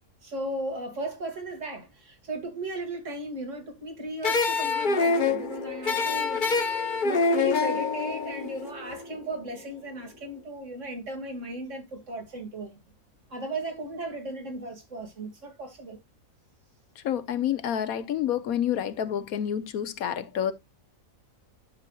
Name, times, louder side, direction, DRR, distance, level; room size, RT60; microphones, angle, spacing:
voice 1, 0.2-6.4 7.0-12.8 13.3-16.0, right 2 dB, 60° right, 2.5 m, -36 dB
sound 1, 4.2-9.3, left 4 dB, 40° left, 0.9 m, -26 dB
voice 2, 17.0-20.5, left 9 dB, 85° left, 1.3 m, -28 dB
10.5 x 6.7 x 2.3 m
omnidirectional pair, 1.5 m